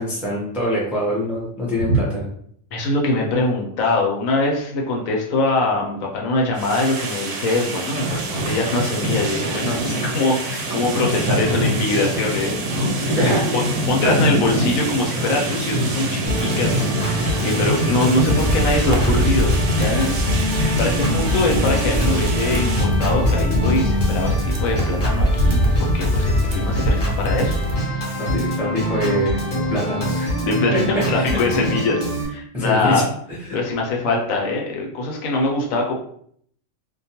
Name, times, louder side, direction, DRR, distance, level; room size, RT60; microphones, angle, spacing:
voice 1, 0.0-2.3 13.1-13.5 14.0-14.1 15.5-15.6 28.2-30.4 30.7-30.8 31.1-31.3 32.5-33.0 33.3-33.6, equal, ahead, -6 dB, 0.4 m, -24 dB
voice 2, 2.7-27.5 30.4-33.1 33.5-35.9, left 2 dB, 80° left, 0 dB, 1.0 m, -23 dB
sound 1, 6.6-22.9, right 1 dB, 80° right, 1.0 m, -24 dB
Organ, 16.3-32.3, equal, 45° left, 0.8 m, -25 dB
sound 2, 18.2-27.7, equal, 65° right, 0.6 m, -22 dB
2.5 x 2.2 x 2.8 m, 0.64 s
omnidirectional pair, 1.4 m